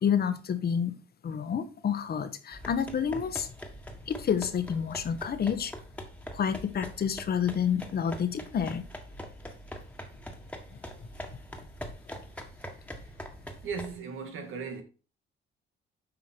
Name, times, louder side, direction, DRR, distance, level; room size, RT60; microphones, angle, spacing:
voice 1, 0.0-0.9 1.2-3.5 4.1-5.7 6.3-8.9 10.7-10.8 11.8-11.9, left 7 dB, 50° left, 1.1 m, -29 dB
sound 1, 2.5-13.9, equal, 5° left, 1.6 m, -43 dB
voice 2, 13.6-14.8, right 5 dB, 80° right, 2.0 m, -37 dB
8.0 x 5.1 x 4.5 m
cardioid pair, 90°, 20 cm